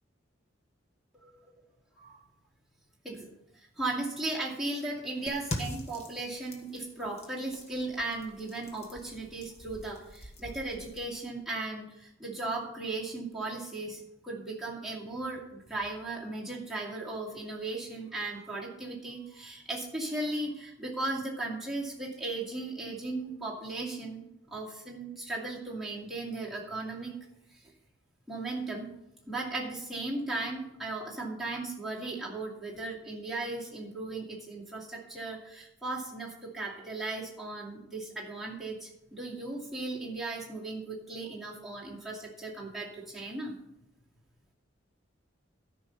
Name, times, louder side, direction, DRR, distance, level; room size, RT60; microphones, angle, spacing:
voice 1, 3.5-27.1 27.5-27.7 28.3-28.9 29.3-43.5, right 2 dB, ahead, -6 dB, 2.4 m, -37 dB
sound 1, 5.3-11.1, left 1 dB, 30° left, 1.4 m, -43 dB
13.0 x 5.4 x 5.7 m, 0.82 s
head